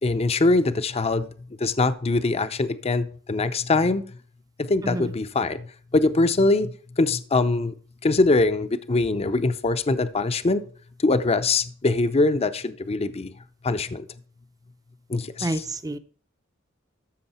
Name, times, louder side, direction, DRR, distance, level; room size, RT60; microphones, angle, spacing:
voice 1, 0.0-1.3 1.6-4.0 4.6-5.7 5.9-7.7 8.0-10.6 11.0-13.3 13.6-14.0 15.1-15.6, left 3 dB, 30° left, 0.6 m, -23 dB
voice 2, 15.4-16.0, right 1 dB, 20° right, 0.6 m, -28 dB
13.5 x 6.3 x 4.3 m
head